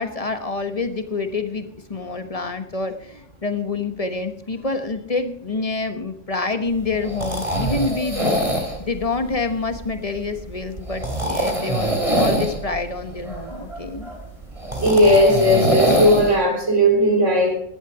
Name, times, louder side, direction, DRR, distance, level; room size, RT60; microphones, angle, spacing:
voice 1, 0.0-14.1, left 3 dB, 30° left, 1.2 m, -27 dB
sound 1, 6.7-16.4, right 1 dB, 25° right, 3.3 m, -24 dB
voice 2, 14.8-17.6, equal, 60° right, 3.5 m, -16 dB
17.0 x 11.5 x 4.9 m
omnidirectional pair, 1.4 m